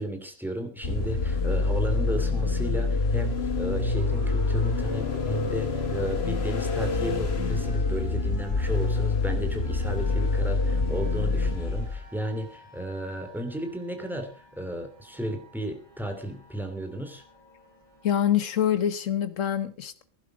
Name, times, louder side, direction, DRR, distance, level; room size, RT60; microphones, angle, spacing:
voice 1, 0.0-17.2, right 1 dB, ahead, 2.8 m, -34 dB
sound 1, 0.8-12.1, left 3 dB, 55° left, 1.5 m, -26 dB
sound 2, 3.9-18.3, right 1 dB, 20° left, 7.4 m, -50 dB
voice 2, 18.0-20.0, left 10 dB, 85° left, 1.5 m, -25 dB
16.5 x 11.5 x 5.0 m
omnidirectional pair, 1.3 m